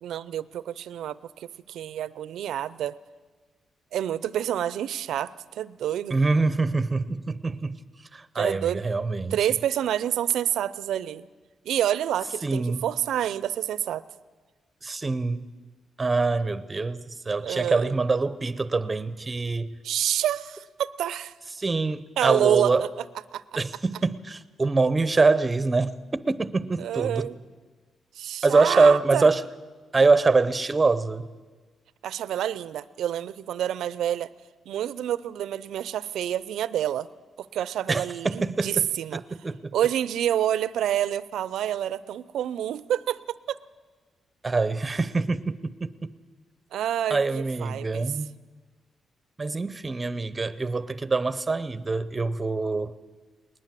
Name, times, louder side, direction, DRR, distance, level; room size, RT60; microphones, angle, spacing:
voice 1, 0.0-3.0 3.9-6.2 8.4-8.8 9.3-11.3 11.6-14.0 17.4-17.9 19.8-21.3 22.2-22.9 23.3-23.4 26.8-27.4 28.1-29.3 32.0-34.3 34.7-37.1 37.4-39.2 39.7-43.6 46.7-48.2, right 11 dB, 90° right, 0.6 m, -28 dB
voice 2, 6.1-7.8 8.1-9.4 12.4-12.8 14.8-15.5 16.0-19.7 21.6-22.8 23.6-25.9 26.3-27.3 28.4-29.4 29.9-31.3 37.9-38.9 39.1-39.6 44.4-46.1 47.1-48.3 49.4-52.9, right 3 dB, 20° right, 0.7 m, -24 dB
20.0 x 20.0 x 7.6 m
cardioid pair, 135°, 0 cm